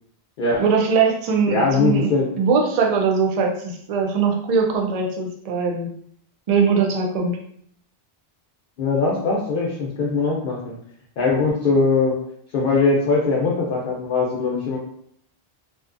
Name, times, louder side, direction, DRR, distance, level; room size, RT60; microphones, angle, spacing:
voice 1, 0.4-2.1 2.4-5.9 6.5-7.4, right 5 dB, 55° right, 1 dB, 0.4 m, -21 dB
voice 2, 1.5-2.3 8.8-10.8 11.2-12.1 12.5-14.8, left 3 dB, 65° left, -3 dB, 0.7 m, -21 dB
2.6 x 2.2 x 2.4 m, 0.67 s
omnidirectional pair, 1.0 m